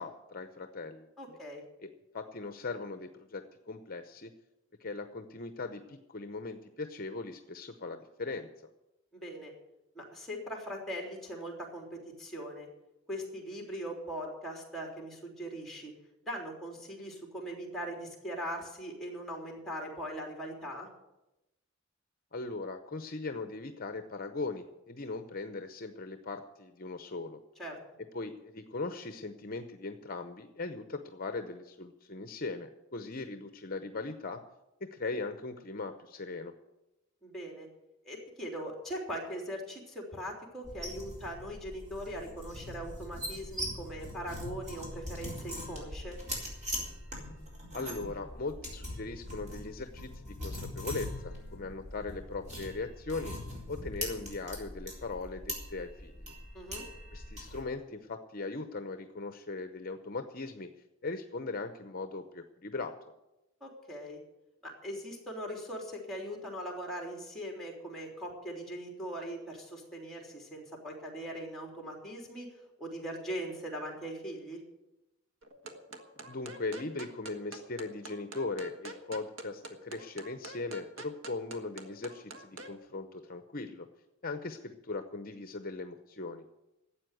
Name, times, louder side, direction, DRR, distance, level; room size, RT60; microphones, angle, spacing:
voice 1, 0.0-1.4 1.8-4.3 4.8-8.5 22.3-27.4 28.1-34.4 34.8-36.5 47.7-53.4 53.7-56.3 57.1-60.7 61.0-62.9 76.2-83.9 84.2-86.4, left 3 dB, 45° left, 8 dB, 0.7 m, -39 dB
voice 2, 1.2-1.6 9.1-9.5 9.9-11.8 12.2-12.7 13.1-15.9 16.2-20.9 27.6-27.8 37.2-37.7 38.0-46.1 56.5-56.8 63.6-64.2 64.6-72.5 72.8-74.6, equal, ahead, 0 dB, 3.4 m, -40 dB
sound 1, 40.6-57.6, equal, 35° right, 4.2 m, -41 dB
sound 2, 75.4-82.7, right 2 dB, 65° right, 1.5 m, -46 dB
12.5 x 8.3 x 9.2 m, 0.94 s
head